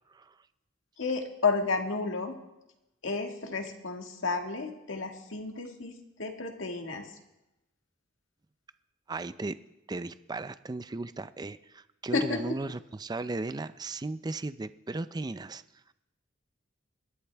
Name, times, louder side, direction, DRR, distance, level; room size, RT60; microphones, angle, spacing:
voice 1, 1.0-2.4 3.0-7.1 12.1-12.5, left 4 dB, 80° left, 3 dB, 1.8 m, -31 dB
voice 2, 9.1-9.6 9.9-15.6, right 2 dB, 20° right, 13 dB, 0.4 m, -36 dB
22.0 x 11.5 x 3.4 m, 0.93 s
head